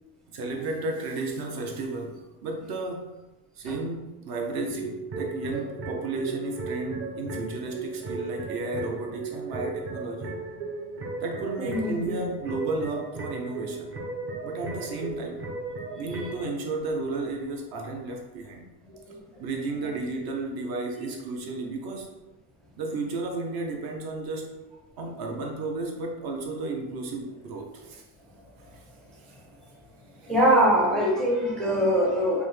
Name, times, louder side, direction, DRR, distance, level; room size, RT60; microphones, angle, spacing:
voice 1, 0.3-3.2 3.6-10.3 11.2-13.9 14.4-15.5 15.9-18.6 19.4-22.1 22.8-24.5 25.0-28.0, right 3 dB, 55° right, 1 dB, 0.8 m, -33 dB
sound 1, 4.7-16.4, right 3 dB, 30° right, 0.7 m, -36 dB
voice 2, 11.6-12.1 16.1-16.2 30.2-32.4, equal, ahead, -4 dB, 0.5 m, -23 dB
5.2 x 2.2 x 3.2 m, 1.0 s
cardioid pair, 155°, 43 cm